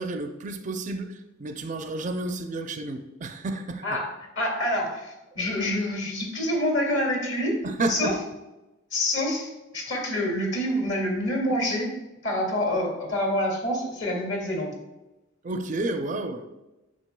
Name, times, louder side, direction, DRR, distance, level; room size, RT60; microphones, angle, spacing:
voice 1, 0.0-3.8 5.3-5.4 7.6-8.2 15.4-16.5, right 2 dB, 40° right, 7 dB, 0.4 m, -31 dB
voice 2, 4.4-7.6 7.9-8.1 8.9-11.9 12.2-14.8, left 1 dB, 60° left, 0 dB, 2.1 m, -27 dB
9.0 x 6.2 x 2.2 m, 1.0 s
head